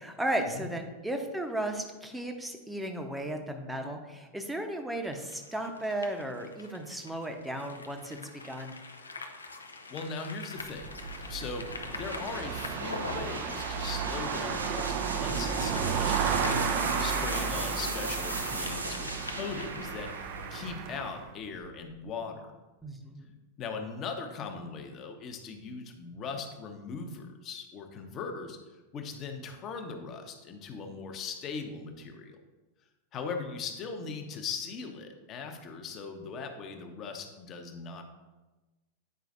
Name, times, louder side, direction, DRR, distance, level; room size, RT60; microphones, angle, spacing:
voice 1, 0.0-8.7 22.8-23.3, right 1 dB, 5° right, 4 dB, 0.8 m, -35 dB
sound 1, 5.1-20.5, left 3 dB, 75° left, 0.6 m, -43 dB
voice 2, 9.9-10.9 11.3-22.5 23.6-28.6 28.9-32.4 33.1-38.0, left 5 dB, 30° left, 5 dB, 0.9 m, -39 dB
sound 2, 10.6-21.2, right 7 dB, 45° right, 0.5 m, -33 dB
sound 3, 12.0-21.8, right 2 dB, 80° right, 0.8 m, -39 dB
9.3 x 4.9 x 2.6 m, 1.2 s
figure-of-eight pair, 90°, 0 cm